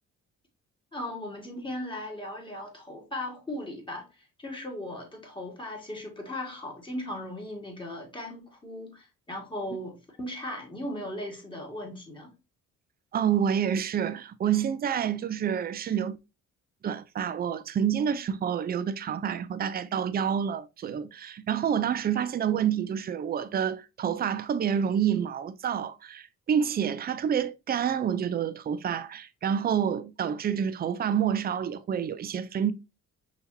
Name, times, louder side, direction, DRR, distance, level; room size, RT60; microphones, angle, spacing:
voice 1, 0.9-12.3, left 1 dB, 15° left, 1.7 m, -37 dB
voice 2, 13.1-16.2 16.8-32.7, right 8 dB, 30° right, 0.4 m, -28 dB
5.8 x 2.9 x 2.6 m
cardioid pair, 90°, 30 cm